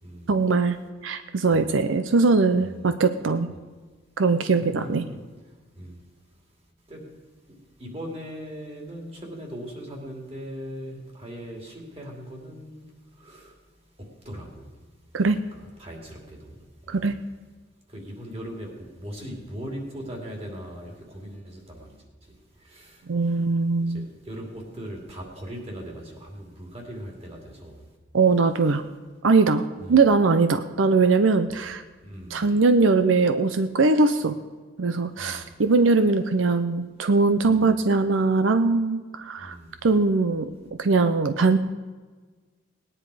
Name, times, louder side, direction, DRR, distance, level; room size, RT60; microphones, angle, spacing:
voice 1, 0.3-0.8 1.0-3.5 4.2-5.0 15.1-15.4 16.9-17.1 23.1-24.1 28.1-28.8 29.2-31.8 32.3-34.4 34.8-39.6 39.8-40.5 40.8-41.6, right 3 dB, 85° right, 10 dB, 0.6 m, -21 dB
voice 2, 4.5-5.2 5.4-6.5 6.9-7.1 7.4-17.1 17.9-23.2 23.7-27.9 29.8-30.1 31.5-31.7 32.0-32.5 35.2-35.6 37.5-37.7 39.4-39.8, equal, 30° right, 0 dB, 2.7 m, -40 dB
18.5 x 9.9 x 4.9 m, 1.4 s
head